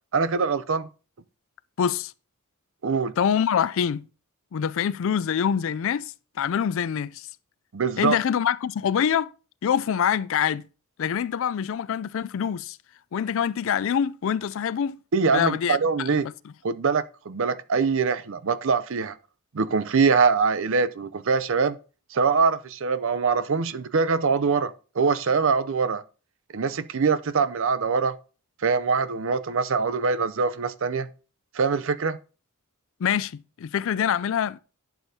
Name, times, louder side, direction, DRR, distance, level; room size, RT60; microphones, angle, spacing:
voice 1, 0.1-0.9 2.8-3.1 7.7-8.2 15.1-16.3 16.6-19.2 19.5-21.8 22.1-26.0 26.5-28.2 28.6-31.1 31.5-32.2, right 5 dB, 60° right, 0.5 m, -23 dB
voice 2, 1.8-2.1 3.2-4.1 4.5-7.3 8.0-9.3 9.6-10.7 11.0-12.8 13.1-15.0 15.3-16.2 33.0-34.6, left 8 dB, 60° left, 0.3 m, -25 dB
11.5 x 7.1 x 2.8 m
head